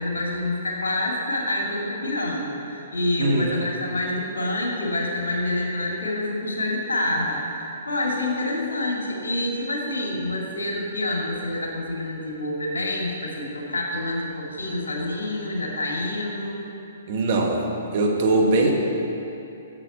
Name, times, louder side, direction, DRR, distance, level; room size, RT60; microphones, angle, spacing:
voice 1, 0.0-7.6 7.9-16.6, left 1 dB, 75° left, -2 dB, 2.3 m, -27 dB
voice 2, 3.2-3.5 17.1-17.6 17.9-18.7, right 2 dB, 50° right, 0 dB, 1.6 m, -21 dB
8.9 x 7.4 x 6.7 m, 2.8 s
figure-of-eight pair, 125°, 0 cm